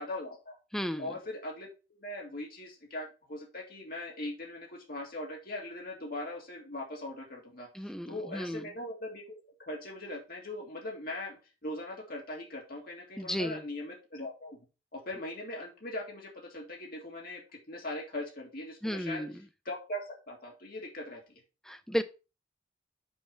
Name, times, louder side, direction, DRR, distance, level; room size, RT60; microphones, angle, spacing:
voice 1, 0.0-0.6 1.0-14.6 14.9-19.3 19.7-21.2, left 1 dB, 45° left, -1 dB, 1.9 m, -40 dB
voice 2, 0.7-1.1 7.7-8.6 13.2-13.6 18.8-19.3 21.6-22.0, equal, ahead, 9 dB, 0.5 m, -34 dB
6.3 x 4.6 x 5.1 m, 0.31 s
head